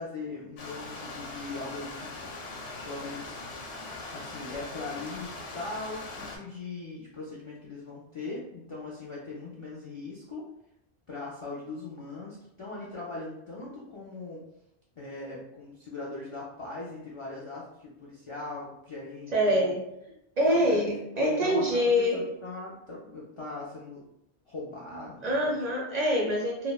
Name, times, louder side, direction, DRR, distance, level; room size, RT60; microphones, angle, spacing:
voice 1, 0.0-2.3 2.8-3.4 4.1-10.5 11.1-14.4 15.0-19.7 20.5-20.8 21.2-24.0 24.5-25.5, left 3 dB, 55° left, -5 dB, 0.3 m, -40 dB
Stream, 0.6-6.4, left 2 dB, 85° left, 0.8 m, -41 dB
voice 2, 19.3-19.8 20.4-22.2 25.2-26.7, equal, 55° right, -3 dB, 0.5 m, -25 dB
2.7 x 2.1 x 2.2 m, 0.82 s
omnidirectional pair, 1.1 m